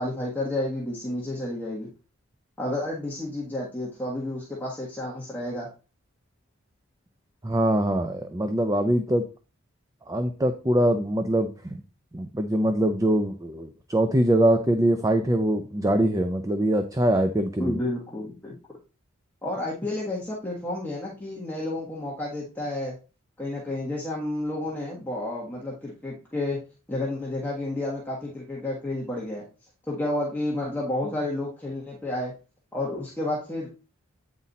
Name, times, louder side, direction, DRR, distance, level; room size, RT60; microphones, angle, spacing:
voice 1, 0.0-1.9 2.6-5.7 17.6-18.6 19.4-22.9 23.4-26.6 26.9-29.4 29.9-32.3 32.7-33.7, left 1 dB, 10° left, -5 dB, 1.4 m, -31 dB
voice 2, 7.4-9.2 10.1-11.8 12.1-17.8, right 1 dB, 15° right, 7 dB, 0.5 m, -23 dB
8.7 x 4.1 x 4.1 m, 0.33 s
head